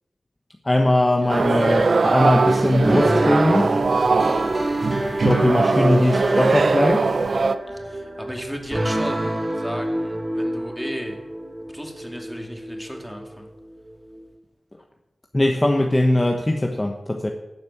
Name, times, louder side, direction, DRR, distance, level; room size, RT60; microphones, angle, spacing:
voice 1, 0.6-3.8 5.2-7.1 15.3-17.3, left 1 dB, 20° left, 2 dB, 1.2 m, -20 dB
voice 2, 1.2-1.5 4.2-4.6 7.7-11.2 11.7-13.5, equal, ahead, 2 dB, 2.5 m, -35 dB
sound 1, 1.3-7.6, right 4 dB, 65° right, 0.6 m, -21 dB
sound 2, 2.8-14.2, right 1 dB, 30° right, 1.5 m, -27 dB
12.0 x 6.5 x 8.1 m, 1.0 s
cardioid pair, 55°, 0 cm